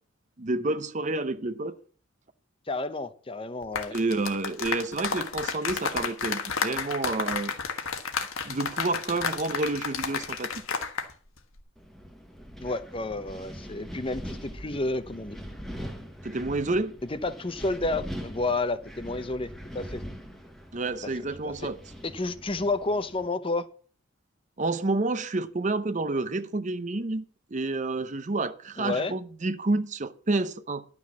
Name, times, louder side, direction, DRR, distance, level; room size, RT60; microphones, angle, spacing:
voice 1, 0.4-1.8 3.9-7.5 8.4-10.5 16.2-16.9 20.7-21.8 24.6-27.2 27.5-30.8, right 2 dB, 35° right, 0.6 m, -29 dB
voice 2, 2.7-3.9 12.6-15.4 17.1-20.0 21.4-21.7 22.0-23.7 28.8-29.1, left 2 dB, 25° left, 0.6 m, -30 dB
sound 1, 3.6-11.1 11.4-11.6, left 5 dB, 85° left, 1.5 m, -31 dB
Wind, 11.8-23.3, equal, ahead, 1.2 m, -42 dB
11.5 x 6.1 x 7.3 m
head